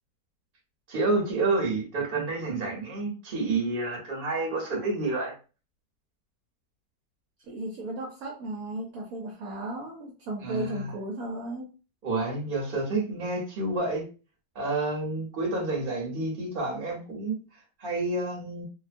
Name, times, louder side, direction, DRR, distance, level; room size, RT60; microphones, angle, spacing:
voice 1, 0.9-5.3 10.4-10.9 12.0-14.0 14.5-17.4 17.8-18.6, right 3 dB, 40° right, -2 dB, 0.9 m, -29 dB
voice 2, 7.4-11.7, right 1 dB, 70° right, -2 dB, 1.0 m, -35 dB
2.8 x 2.2 x 2.5 m, 0.34 s
omnidirectional pair, 1.8 m